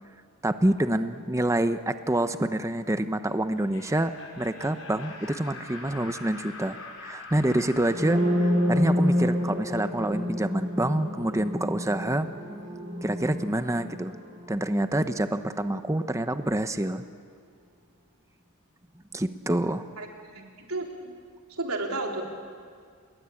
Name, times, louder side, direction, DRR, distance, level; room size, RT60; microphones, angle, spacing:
voice 1, 0.4-12.3 13.0-14.2 14.5-17.0 19.1-19.9, right 1 dB, 15° right, 9 dB, 0.8 m, -27 dB
Laughter, 3.5-10.3, left 3 dB, 75° left, 5.9 m, -45 dB
sound 1, 7.8-15.6, left 1 dB, 30° right, 4.3 m, -28 dB
voice 2, 20.0-21.1 21.5-22.2, right 2 dB, 75° right, 1 dB, 3.7 m, -33 dB
29.5 x 21.5 x 8.5 m, 2.1 s
head